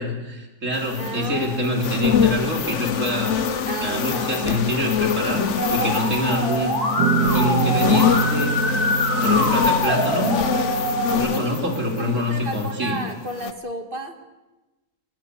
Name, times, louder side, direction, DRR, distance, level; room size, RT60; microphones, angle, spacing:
voice 1, 0.0-3.4 3.8-6.8 7.3-8.6 9.2-10.4 11.1-13.0, equal, 50° right, 1 dB, 4.1 m, -26 dB
sound 1, 0.7-12.9 13.3-13.5, left 7 dB, 50° left, 1.2 m, -25 dB
voice 2, 1.0-1.7 3.6-4.6 11.3-14.2, right 2 dB, 35° right, 5 dB, 2.4 m, -33 dB
Musical instrument, 5.6-11.1, left 1 dB, 70° left, 5.2 m, -24 dB
sound 2, 7.0-12.0, right 5 dB, 85° right, 1.5 m, -27 dB
21.5 x 19.0 x 8.5 m, 1.1 s
omnidirectional pair, 1.7 m